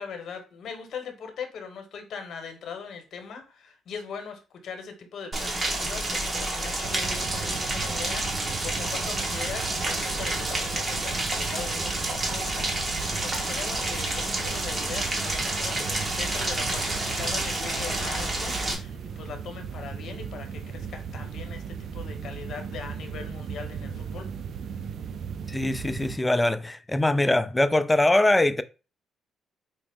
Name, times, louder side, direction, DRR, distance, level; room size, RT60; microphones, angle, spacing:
voice 1, 0.0-24.3, left 6 dB, 65° left, 0.9 m, -40 dB
Rain, 5.3-18.8, right 2 dB, 30° right, 1.1 m, -29 dB
sound 1, 6.8-26.2, right 7 dB, 60° right, 0.4 m, -37 dB
voice 2, 25.5-28.6, left 1 dB, 10° left, 0.3 m, -22 dB
4.6 x 2.0 x 3.4 m
cardioid pair, 90°, 0 cm